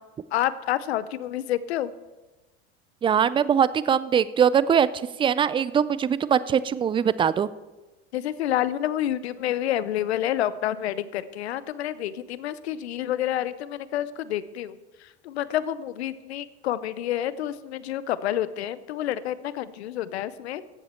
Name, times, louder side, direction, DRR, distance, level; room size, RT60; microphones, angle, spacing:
voice 1, 0.3-1.9 8.1-20.6, left 12 dB, 90° left, 16 dB, 0.6 m, -29 dB
voice 2, 3.0-7.5, right 8 dB, 15° right, 17 dB, 0.3 m, -22 dB
14.5 x 7.5 x 4.3 m, 1.1 s
hypercardioid pair, 90°, 31 cm